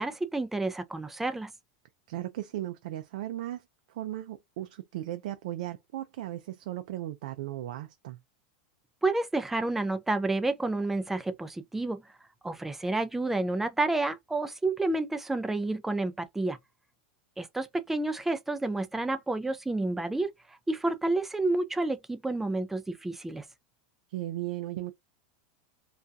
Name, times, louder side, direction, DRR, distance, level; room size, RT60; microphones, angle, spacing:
voice 1, 0.0-1.5 9.0-12.0 12.4-16.6 17.4-23.5, right 2 dB, 5° right, 0.4 m, -30 dB
voice 2, 2.1-3.6 3.9-8.2 24.1-24.9, right 14 dB, 70° right, 0.4 m, -36 dB
2.3 x 2.2 x 2.6 m
supercardioid pair, 130°, 4 cm